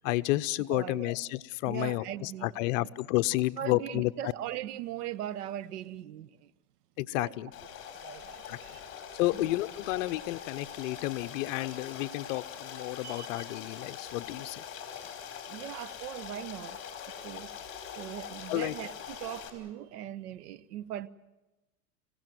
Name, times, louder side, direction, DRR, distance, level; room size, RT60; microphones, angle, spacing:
voice 1, 0.0-4.1 7.0-7.5 8.5-8.6 9.2-14.6 18.5-18.7, left 18 dB, 55° left, 0.8 m, -31 dB
voice 2, 0.7-1.1 1.7-2.9 3.6-6.5 7.1-7.3 7.9-8.8 9.3-9.5 13.0-13.5 15.5-16.8 17.2-17.5 18.0-21.1, right 12 dB, 80° right, 1.1 m, -40 dB
Stream, 7.5-19.5, left 8 dB, 30° left, 4.8 m, -43 dB
26.5 x 16.5 x 9.3 m
supercardioid pair, 140°, 46 cm